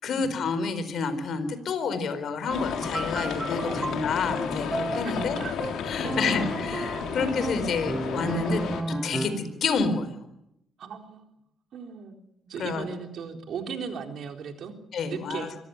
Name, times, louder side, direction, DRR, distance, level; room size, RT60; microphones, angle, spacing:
voice 1, 0.0-5.4 5.9-8.6 8.9-10.1 12.6-12.8 14.9-15.5, left 4 dB, 65° left, 11 dB, 4.1 m, -29 dB
sound 1, 2.5-8.8, left 7 dB, 80° left, 3.4 m, -33 dB
sound 2, 2.5-9.5, right 2 dB, 15° right, 1.1 m, -33 dB
voice 2, 3.6-3.9 5.0-5.6 6.0-6.4 10.8-11.2 11.7-14.7 15.0-15.5, right 6 dB, 65° right, 4 dB, 3.9 m, -37 dB
25.0 x 15.0 x 9.5 m, 0.83 s
cardioid pair, 90°, 0 cm